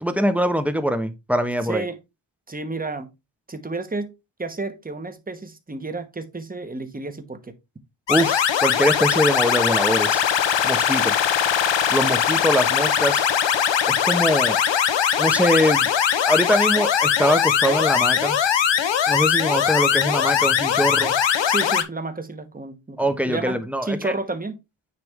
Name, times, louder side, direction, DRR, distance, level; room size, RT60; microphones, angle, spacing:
voice 1, 0.0-1.9 8.1-10.2 10.6-11.1 11.9-13.2 13.9-14.6 15.2-15.9 16.3-18.4 19.1-21.2 23.0-24.1, equal, 5° right, 1.0 m, -23 dB
voice 2, 1.6-2.0 2.5-3.1 3.5-4.1 4.4-7.5 21.5-24.6, right 3 dB, 20° right, 1.2 m, -31 dB
sound 1, 8.1-21.8, left 8 dB, 65° left, 1.0 m, -20 dB
9.5 x 3.4 x 3.6 m
cardioid pair, 85°, 46 cm